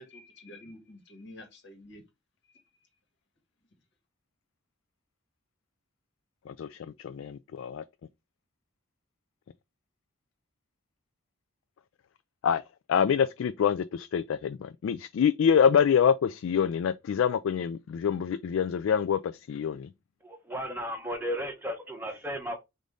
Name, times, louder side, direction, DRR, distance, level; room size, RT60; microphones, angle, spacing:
voice 1, 0.0-2.0, left 1 dB, 55° left, 1.6 m, -48 dB
voice 2, 6.5-7.8 12.4-12.6 12.9-19.9, left 7 dB, 70° left, 0.3 m, -26 dB
voice 3, 20.2-22.6, equal, 10° right, 0.9 m, -34 dB
5.1 x 2.6 x 3.6 m
head